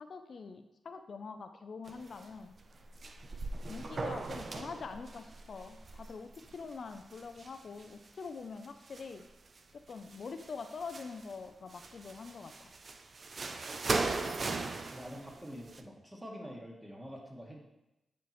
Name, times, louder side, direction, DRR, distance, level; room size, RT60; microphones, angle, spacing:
voice 1, 0.0-2.5 3.7-9.2 9.7-12.7, left 4 dB, 65° left, 8 dB, 0.4 m, -44 dB
sound 1, 1.9-2.3 2.6-8.1 8.6-9.6 9.9-11.3 11.7-15.8, right 3 dB, 50° right, 0.5 m, -39 dB
voice 2, 14.9-17.6, equal, 15° right, -2 dB, 2.0 m, -46 dB
9.2 x 4.4 x 3.1 m, 0.93 s
cardioid pair, 55°, 0 cm